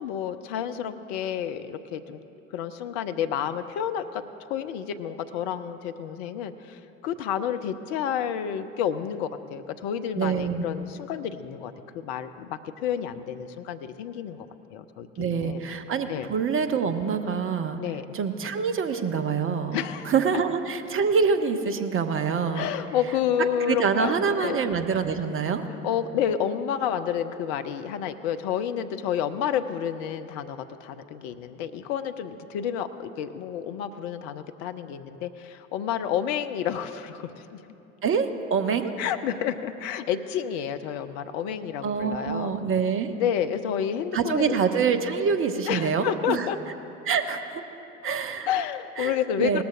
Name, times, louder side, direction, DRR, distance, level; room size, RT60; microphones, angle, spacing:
voice 1, 0.0-2.2 2.5-4.2 4.5-14.4 14.7-15.6 16.1-16.3 17.8-18.0 19.7-20.1 22.5-24.6 25.8-37.6 39.0-42.5 43.2-44.6 45.7-46.6 48.5-49.6, left 9 dB, 55° left, 10 dB, 0.6 m, -30 dB
voice 2, 10.2-10.6 15.2-17.8 18.1-19.8 20.0-22.7 23.7-25.7 38.0-38.9 41.8-43.1 44.1-46.5 47.0-47.6 48.0-48.5 49.0-49.6, right 6 dB, 35° right, 8 dB, 0.9 m, -25 dB
18.5 x 13.5 x 2.5 m, 2.9 s
figure-of-eight pair, 55°, 38 cm